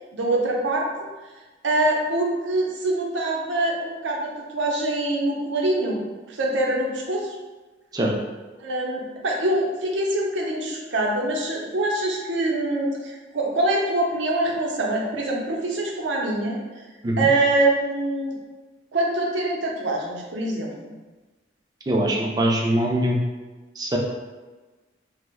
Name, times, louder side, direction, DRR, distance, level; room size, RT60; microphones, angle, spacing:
voice 1, 0.1-0.9 1.6-6.0 6.3-7.3 8.6-16.6 17.2-18.3 18.9-20.9, right 2 dB, 75° right, -1 dB, 0.6 m, -24 dB
voice 2, 21.9-23.2 23.8-24.0, right 1 dB, 20° right, -1 dB, 0.4 m, -22 dB
2.9 x 2.1 x 3.4 m, 1.3 s
head